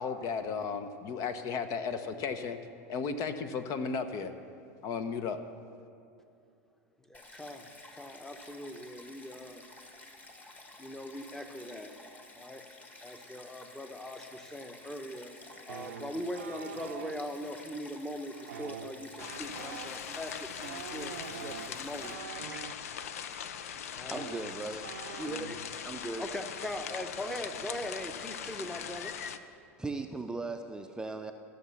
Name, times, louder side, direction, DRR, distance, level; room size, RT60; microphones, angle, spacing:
voice 1, 0.0-2.6 2.9-4.3 4.8-5.4, left 5 dB, 50° left, 9 dB, 0.9 m, -34 dB
Stream, 7.1-22.1, left 2 dB, 20° left, 1.6 m, -52 dB
voice 2, 7.1-9.6 10.8-11.9 12.3-12.7 13.0-15.3 15.6-22.3 23.9-24.2 25.2-25.6 26.2-29.1, left 1 dB, 5° left, 7 dB, 1.0 m, -41 dB
sound 1, 15.7-17.2 18.4-22.8 23.7-23.8 24.0-25.7 26.0-26.2 26.5-27.0, right 8 dB, 80° right, 0.6 m, -45 dB
sound 2, 19.2-29.4, left 8 dB, 80° left, 0.6 m, -41 dB
voice 3, 24.1-25.2 25.8-26.3 29.8-31.3, right 3 dB, 10° right, 6 dB, 0.6 m, -38 dB
15.0 x 6.6 x 7.0 m, 2.5 s
hypercardioid pair, 95°, 8 cm